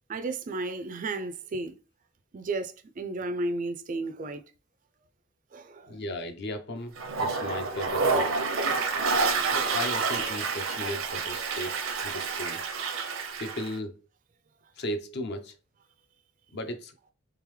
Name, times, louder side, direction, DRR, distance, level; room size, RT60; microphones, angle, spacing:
voice 1, 0.1-1.8 2.3-4.4 5.5-6.0 12.9-13.0, right 2 dB, 40° right, 0.4 m, -33 dB
voice 2, 5.9-6.9 7.2-8.3 9.5-12.6 13.4-14.0 14.8-15.6 16.5-16.9, left 1 dB, 55° left, 0.6 m, -36 dB
Toilet flush, 7.0-13.7, right 4 dB, 75° right, 0.7 m, -28 dB
3.7 x 3.3 x 3.1 m
head